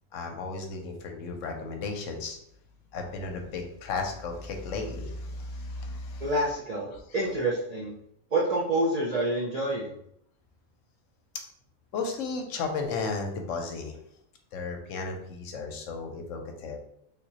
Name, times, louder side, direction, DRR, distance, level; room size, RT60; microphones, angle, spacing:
voice 1, 0.1-2.4 2.9-6.3 6.9-7.0 11.9-14.0 14.5-16.8, left 4 dB, 70° left, 3 dB, 0.9 m, -34 dB
voice 2, 6.2-8.0 8.3-10.0, right 1 dB, 70° right, -3 dB, 0.3 m, -28 dB
3.5 x 2.9 x 2.8 m, 0.73 s
omnidirectional pair, 1.5 m